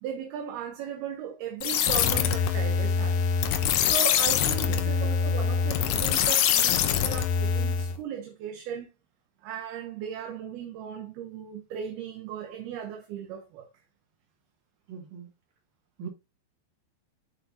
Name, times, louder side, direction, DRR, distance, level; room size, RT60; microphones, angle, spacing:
voice 1, 0.0-3.2 3.8-8.9 9.4-13.7, right 8 dB, 70° right, 2.8 m, -37 dB
sound 1, 1.6-8.0, left 7 dB, 75° left, 2.1 m, -24 dB
voice 2, 4.7-5.0 14.9-15.3 16.0-16.1, right 6 dB, 50° right, 4.7 m, -40 dB
9.5 x 7.5 x 2.9 m
omnidirectional pair, 5.1 m